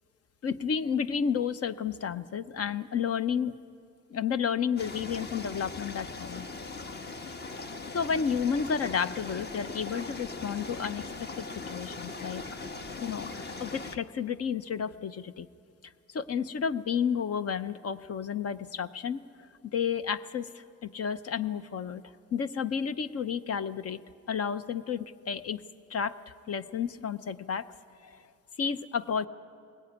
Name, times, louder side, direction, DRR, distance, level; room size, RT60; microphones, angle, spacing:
voice 1, 0.4-3.5 4.1-6.5 7.9-11.0 11.7-12.4 13.0-15.5 16.1-19.2 19.7-22.0 22.3-24.0 24.3-25.6 25.9-27.7 28.0-28.1 28.6-29.3, left 7 dB, 55° left, 13 dB, 0.8 m, -31 dB
sound 1, 4.8-14.0, left 3 dB, 35° left, 1.2 m, -40 dB
20.5 x 18.0 x 9.3 m, 2.5 s
cardioid pair, 90°, 30 cm